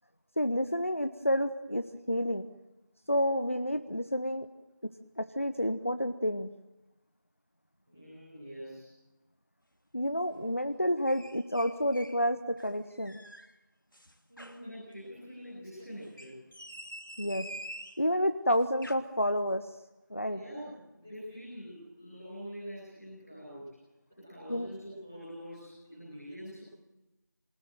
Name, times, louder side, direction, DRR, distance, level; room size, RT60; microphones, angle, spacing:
voice 1, 0.4-2.5 3.1-4.5 5.2-6.5 9.9-13.2 17.2-17.5 18.0-19.7 20.1-20.4 24.5-24.7, equal, 40° left, 9 dB, 1.1 m, -29 dB
voice 2, 7.9-8.9 14.3-16.4 20.3-23.6 24.1-26.6, equal, ahead, -17 dB, 6.4 m, -45 dB
sound 1, 11.1-12.2 12.6-13.5 13.9-14.6 16.0-18.0 18.6-19.0, equal, 90° left, 3.2 m, -46 dB
27.0 x 19.5 x 9.3 m, 0.99 s
figure-of-eight pair, 180°, 11 cm